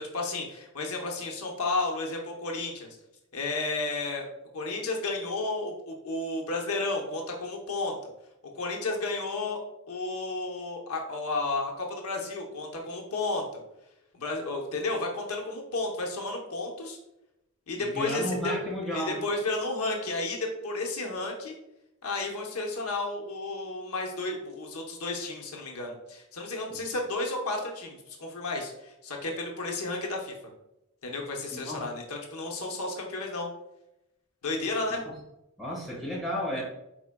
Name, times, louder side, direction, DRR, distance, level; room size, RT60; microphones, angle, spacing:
voice 1, 0.0-3.0 3.3-4.2 4.5-8.0 8.5-9.6 9.9-13.4 14.1-17.0 17.7-18.5 18.9-21.5 22.0-30.3 31.0-33.5 34.4-35.0 36.6-36.7, left 2 dB, 80° left, 1 dB, 0.8 m, -32 dB
voice 2, 17.8-19.2 26.7-26.8 31.5-31.9 35.0-35.2 35.6-36.6, equal, ahead, -6 dB, 1.4 m, -33 dB
4.7 x 4.4 x 2.2 m, 0.88 s
head